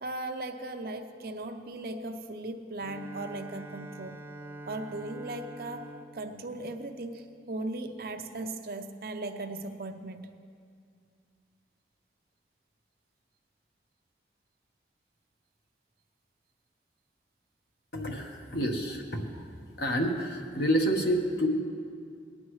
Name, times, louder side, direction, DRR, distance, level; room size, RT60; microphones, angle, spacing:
voice 1, 0.0-4.3 4.7-10.4, right 2 dB, 55° right, 6 dB, 0.6 m, -38 dB
Bowed string instrument, 2.8-7.6, right 2 dB, 10° right, 0.4 m, -46 dB
voice 2, 17.9-19.4 19.8-21.5, equal, 70° left, 2 dB, 1.2 m, -29 dB
18.0 x 9.6 x 3.2 m, 2.3 s
head